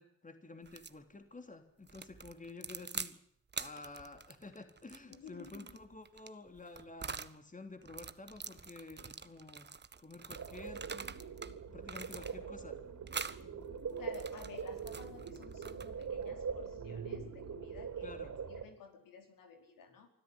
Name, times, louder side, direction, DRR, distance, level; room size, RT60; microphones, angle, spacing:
voice 1, 0.0-3.2 3.5-9.7 10.0-11.2 11.7-12.8 18.0-18.3, left 3 dB, 25° left, 7 dB, 3.4 m, -51 dB
sound 1, 0.7-1.0 1.9-3.2 3.5-7.4 7.8-11.5 11.8-12.6 13.1-13.4 14.0-16.1, right 5 dB, 30° right, 1.4 m, -45 dB
voice 2, 5.1-5.8 14.0-18.1 18.4-20.1, left 5 dB, 80° left, 4 dB, 5.0 m, -53 dB
sound 2, 10.4-18.7, right 6 dB, 60° right, 4.2 m, -43 dB
25.0 x 14.0 x 10.0 m, 0.69 s
supercardioid pair, 60°, 32 cm